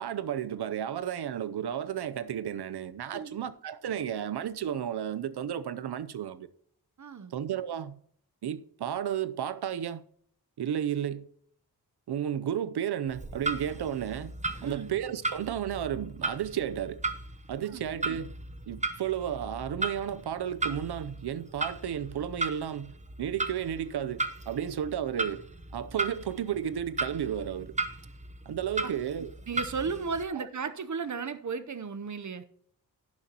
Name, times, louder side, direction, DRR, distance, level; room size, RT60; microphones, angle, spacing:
voice 1, 0.0-6.5 7.3-8.0 8.4-10.0 10.6-11.3 12.1-14.3 14.6-17.0 17.5-18.3 18.7-25.4 25.7-27.7 28.5-29.4 30.3-30.5, right 9 dB, 80° right, 0.7 m, -33 dB
voice 2, 7.0-7.3 14.6-14.9 17.7-17.8 28.8-28.9 29.5-32.4, right 5 dB, 50° right, 0.8 m, -34 dB
Clock, 13.1-30.2, right 3 dB, 20° right, 0.9 m, -36 dB
11.5 x 10.5 x 2.9 m
wide cardioid pair, 95°, 39 cm